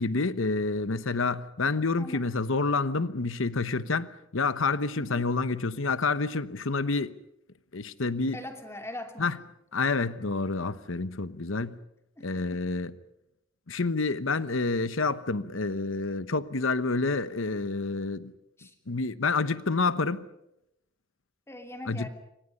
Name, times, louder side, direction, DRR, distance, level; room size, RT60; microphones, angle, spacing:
voice 1, 0.0-7.1 7.7-8.4 9.2-9.4 9.7-11.8 12.2-12.9 13.7-18.3 18.9-20.3 21.9-22.1, left 3 dB, 80° left, 1.0 m, -28 dB
voice 2, 5.0-5.3 8.3-9.4 12.2-12.6 18.6-18.7 21.5-22.1, left 1 dB, 15° left, 2.8 m, -41 dB
28.0 x 25.5 x 5.5 m
head